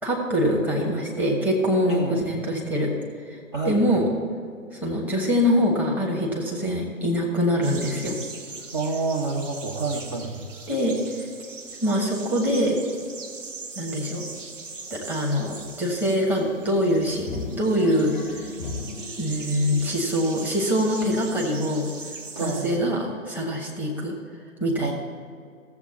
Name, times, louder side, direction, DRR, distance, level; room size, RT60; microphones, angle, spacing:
voice 1, 0.0-2.9 3.3-3.4 3.6-4.1 4.7-8.2 10.7-11.3 11.8-12.8 13.8-14.3 14.9-18.2 19.2-21.9 22.4-24.1 24.6-24.9, equal, 5° right, -4 dB, 1.1 m, -24 dB
voice 2, 1.9-2.3 3.5-4.0 8.7-10.5 22.4-22.9 24.8-24.9, right 3 dB, 20° right, -1 dB, 0.7 m, -28 dB
sound 1, 7.6-22.8, right 4 dB, 60° right, 1.2 m, -40 dB
sound 2, 13.0-13.1 13.5-13.6 13.8-19.9, left 3 dB, 30° left, 0.7 m, -40 dB
15.5 x 7.4 x 4.1 m, 2.3 s
figure-of-eight pair, 125°, 42 cm